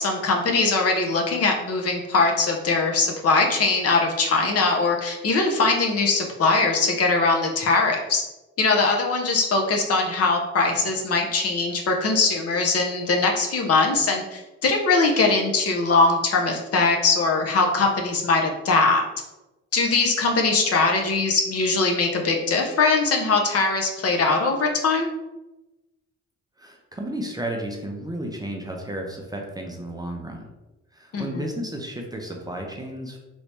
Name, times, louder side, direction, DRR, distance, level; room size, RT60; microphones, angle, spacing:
voice 1, 0.0-8.2 8.6-19.0 19.7-25.1 31.1-31.5, left 3 dB, 50° left, 2 dB, 0.7 m, -21 dB
voice 2, 26.6-30.5 30.9-33.2, right 1 dB, 15° right, 1 dB, 0.5 m, -33 dB
3.1 x 2.7 x 3.3 m, 1.0 s
cardioid pair, 90°, 30 cm